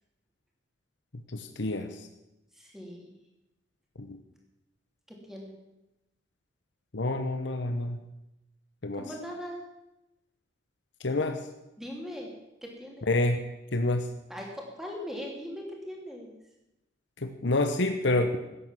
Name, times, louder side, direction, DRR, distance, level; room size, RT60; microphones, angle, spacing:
voice 1, 1.3-2.1 4.0-4.2 6.9-8.0 8.8-9.0 11.0-11.4 13.1-13.4 13.7-14.1 17.2-18.4, left 2 dB, 75° left, 6 dB, 1.1 m, -28 dB
voice 2, 2.5-3.1 5.1-5.5 9.0-9.6 11.8-12.3 12.6-13.1 14.3-16.3, equal, ahead, -1 dB, 3.0 m, -40 dB
14.0 x 9.9 x 7.6 m, 0.94 s
head